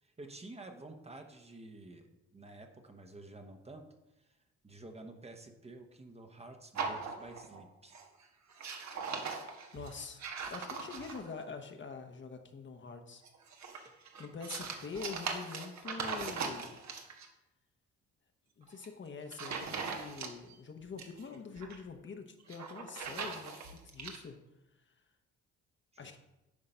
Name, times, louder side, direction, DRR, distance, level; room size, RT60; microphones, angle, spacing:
voice 1, 0.0-3.9 4.2-4.4 4.6-8.0 25.9-26.1, right 2 dB, 20° right, 4 dB, 1.0 m, -51 dB
sound 1, 6.8-7.6 7.9-8.2 8.5-11.4 13.2-17.3 18.6-18.9 19.3-20.6 20.8-21.8 22.4-24.2, right 5 dB, 65° right, 1.3 m, -40 dB
voice 2, 9.7-13.2 14.2-16.8 18.6-24.4 24.9-25.0 26.0-26.2, left 5 dB, 40° left, 6 dB, 1.0 m, -45 dB
9.7 x 3.8 x 5.6 m, 0.93 s
cardioid pair, 90°, 30 cm